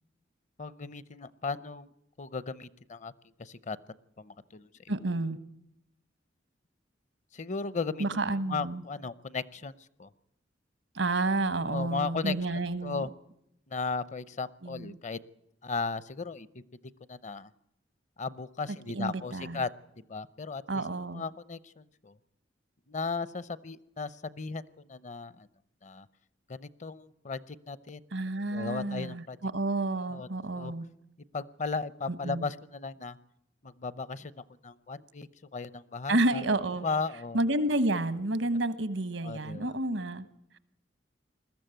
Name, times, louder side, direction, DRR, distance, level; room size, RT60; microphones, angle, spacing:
voice 1, 0.6-1.9 2.2-3.1 3.4-3.8 4.2-4.9 7.3-8.1 8.3-9.7 10.0-10.1 11.6-13.1 13.7-15.2 15.6-16.6 17.1-17.5 18.2-19.7 20.0-20.8 21.1-22.2 22.9-25.5 25.8-26.1 26.5-28.0 28.5-29.4 30.1-30.7 31.3-33.2 33.6-36.4 36.8-37.4 39.2-39.8, left 4 dB, 40° left, 17 dB, 0.7 m, -36 dB
voice 2, 4.9-5.4 8.0-8.8 10.9-13.0 14.6-15.0 18.7-19.6 20.7-21.2 28.1-30.8 32.2-32.5 36.1-36.9 37.3-40.2, right 2 dB, 90° right, 13 dB, 1.3 m, -30 dB
21.0 x 14.0 x 9.1 m, 0.79 s
head